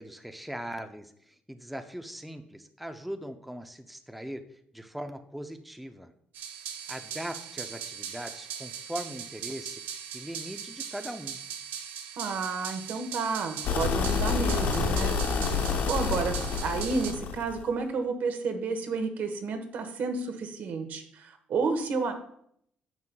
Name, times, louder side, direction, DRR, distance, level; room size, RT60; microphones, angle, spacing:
voice 1, 0.0-6.1 6.9-9.8 10.1-11.4, equal, ahead, 7 dB, 0.5 m, -40 dB
sound 1, 6.3-17.1, right 8 dB, 90° right, 0.8 m, -39 dB
voice 2, 12.2-15.2 15.9-16.3 16.6-22.1, right 4 dB, 70° right, 6 dB, 1.2 m, -31 dB
sound 2, 13.6-17.6, left 5 dB, 70° left, 0.8 m, -28 dB
9.6 x 7.3 x 2.3 m, 0.68 s
cardioid pair, 110°, 3 cm